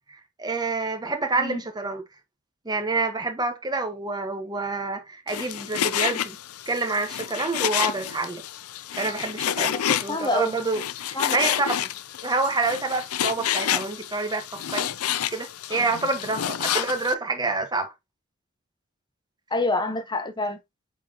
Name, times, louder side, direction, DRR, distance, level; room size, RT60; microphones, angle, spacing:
voice 1, 0.4-2.0 2.6-6.4 6.7-8.4 8.9-11.9 12.2-14.9 15.3-17.9, right 3 dB, 20° right, 1.3 m, -27 dB
Frying (food), 5.3-17.1, left 10 dB, 75° left, 0.5 m, -29 dB
voice 2, 9.6-10.6 11.1-11.4 19.5-20.6, left 2 dB, 20° left, 1.0 m, -27 dB
8.2 x 4.1 x 2.9 m
head